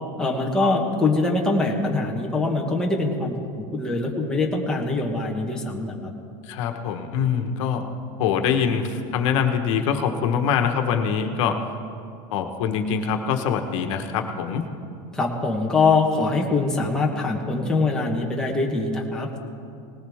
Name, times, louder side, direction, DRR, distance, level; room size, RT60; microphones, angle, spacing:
voice 1, 0.2-6.1 15.1-19.4, left 3 dB, 5° left, -2 dB, 1.1 m, -23 dB
voice 2, 6.5-7.8 8.2-11.6 12.3-14.6, left 7 dB, 70° left, 6 dB, 1.3 m, -24 dB
19.5 x 18.5 x 3.6 m, 2.4 s
cardioid pair, 175°, 16 cm